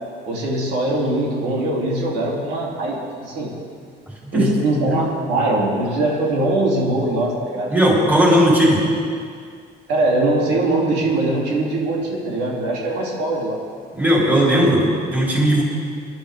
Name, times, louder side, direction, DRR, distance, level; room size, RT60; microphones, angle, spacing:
voice 1, 0.3-3.5 4.3-7.7 9.9-13.6, right 2 dB, 80° right, -4 dB, 3.3 m, -21 dB
voice 2, 7.7-8.8 13.9-15.6, equal, 10° right, -5 dB, 4.0 m, -16 dB
21.5 x 11.5 x 3.7 m, 2.2 s
cardioid pair, 110°, 17 cm